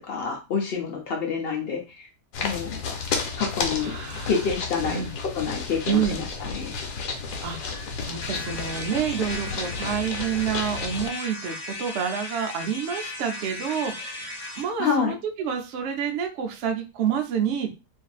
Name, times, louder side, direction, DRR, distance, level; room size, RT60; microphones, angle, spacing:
voice 1, 0.0-2.1 2.4-2.8 3.4-4.0 4.3-5.0 5.3-6.7 14.8-15.1, left 6 dB, 65° left, 1 dB, 0.6 m, -27 dB
sound 1, 2.3-11.1, left 5 dB, 85° left, 1.2 m, -32 dB
voice 2, 3.8-4.3 4.9-5.1 5.9-6.2 7.4-17.7, right 8 dB, 70° right, 3 dB, 0.6 m, -28 dB
sound 2, 8.2-14.7, left 2 dB, 20° left, 0.9 m, -36 dB
2.6 x 2.5 x 2.3 m, 0.28 s
omnidirectional pair, 1.6 m